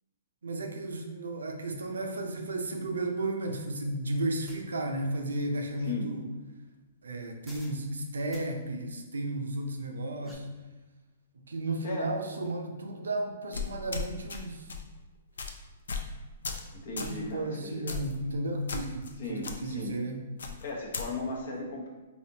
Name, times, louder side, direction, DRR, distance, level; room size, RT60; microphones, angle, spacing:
voice 1, 0.4-6.2 7.0-10.5 11.3-14.7 16.9-20.2, right 2 dB, 90° right, 3 dB, 0.5 m, -34 dB
sound 1, 4.5-4.6 7.4-7.8 8.3-8.5 9.9-10.3, left 1 dB, 5° left, 0.6 m, -51 dB
voice 2, 11.8-12.1 16.7-18.0 19.2-19.9 20.6-21.9, left 3 dB, 65° left, -1 dB, 0.8 m, -36 dB
sound 2, 13.5-14.4 14.7-14.9 15.4-15.5 15.9-16.1 16.4-16.7 17.0-17.2 17.9-18.1 18.7-19.1 19.4-19.5 20.4-21.1, left 5 dB, 80° left, 0.4 m, -35 dB
3.3 x 2.6 x 2.7 m, 1.2 s
hypercardioid pair, 135°, 0 cm